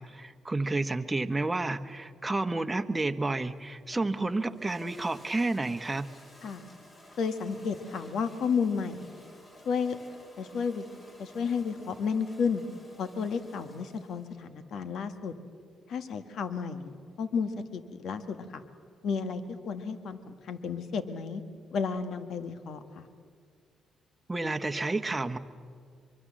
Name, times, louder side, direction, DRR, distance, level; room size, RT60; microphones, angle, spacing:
voice 1, 0.0-6.1 24.3-25.4, right 2 dB, 15° right, 7 dB, 1.1 m, -30 dB
Toilet flush, 3.4-14.4, left 1 dB, 40° left, 7.4 m, -55 dB
voice 2, 7.2-9.1 9.6-10.0 10.4-10.8 11.2-12.6 13.0-15.3 15.9-16.9 17.2-18.6 19.0-21.4 21.7-23.1, left 6 dB, 70° left, 10 dB, 1.6 m, -32 dB
24.0 x 23.5 x 7.6 m, 2.1 s
cardioid pair, 90°, 0 cm